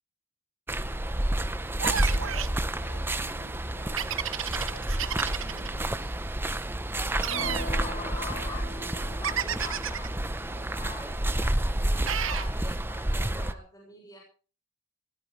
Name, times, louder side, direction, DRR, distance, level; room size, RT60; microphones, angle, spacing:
sound 1, 0.7-13.5, right 1 dB, 10° right, 0.7 m, -30 dB
sound 2, 1.8-2.6 4.0-5.7 7.2-7.7 9.2-10.1 12.1-12.5, right 9 dB, 65° right, 1.0 m, -31 dB
voice 1, 1.9-6.2, left 1 dB, 60° left, 7 dB, 4.7 m, -50 dB
voice 2, 7.0-14.2, left 2 dB, 15° left, -1 dB, 6.6 m, -44 dB
sound 3, 7.3-11.1, left 1 dB, 35° left, 4.3 m, -42 dB
21.0 x 17.5 x 3.2 m, 0.38 s
head